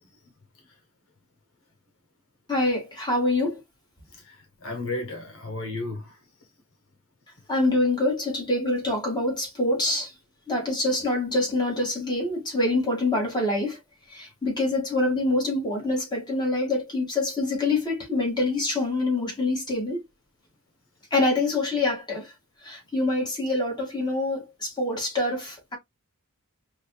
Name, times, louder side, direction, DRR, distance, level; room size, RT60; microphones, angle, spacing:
voice 1, 2.5-3.6 7.5-10.1 10.5-13.8 14.1-20.0 21.1-22.3 22.6-25.8, left 2 dB, 20° left, 2.1 m, -25 dB
voice 2, 4.1-6.2, left 2 dB, 65° left, 1.1 m, -34 dB
5.3 x 2.6 x 2.3 m
head